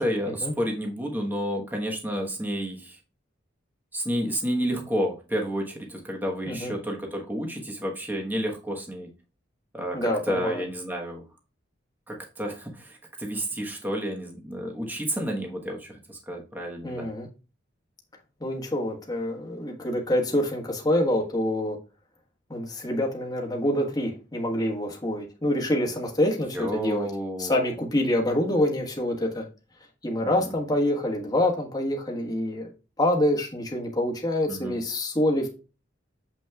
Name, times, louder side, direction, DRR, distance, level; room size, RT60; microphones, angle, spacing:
voice 1, 0.0-3.0 3.9-9.1 9.7-11.2 12.1-17.1 26.5-27.7 30.2-30.5 34.5-34.8, equal, 10° right, 1 dB, 1.2 m, -30 dB
voice 2, 9.9-10.6 16.8-17.3 18.4-21.8 22.5-27.1 27.4-29.4 30.0-32.7 33.0-35.5, left 1 dB, 20° left, 0 dB, 1.4 m, -26 dB
7.3 x 6.1 x 2.3 m, 0.33 s
head